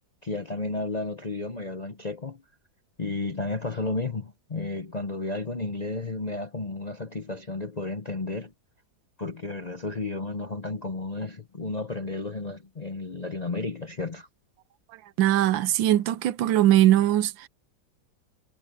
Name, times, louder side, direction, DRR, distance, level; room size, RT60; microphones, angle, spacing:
voice 1, 0.2-2.4 3.0-8.5 9.2-14.3, left 3 dB, 40° left, 0.6 m, -32 dB
voice 2, 15.2-17.5, right 13 dB, 90° right, 1.5 m, -21 dB
omnidirectional pair, 2.0 m